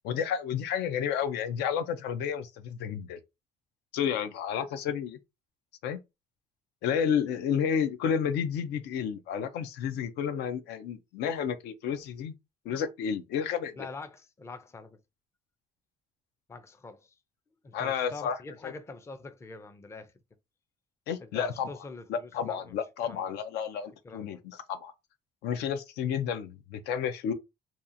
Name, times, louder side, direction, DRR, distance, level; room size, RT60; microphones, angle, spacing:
voice 1, 0.0-3.2 3.9-5.2 5.8-6.0 6.8-12.3 12.7-13.7 17.7-18.4 18.6-18.7 21.1-21.7 22.1-24.9 25.4-27.3, left 8 dB, 80° left, 0.5 m, -31 dB
voice 2, 13.8-15.0 16.5-17.2 17.6-20.1 21.2-22.7 23.0-23.3 24.0-24.4, left 3 dB, 15° left, 0.4 m, -44 dB
2.8 x 2.4 x 2.5 m
cardioid pair, 110°, 17 cm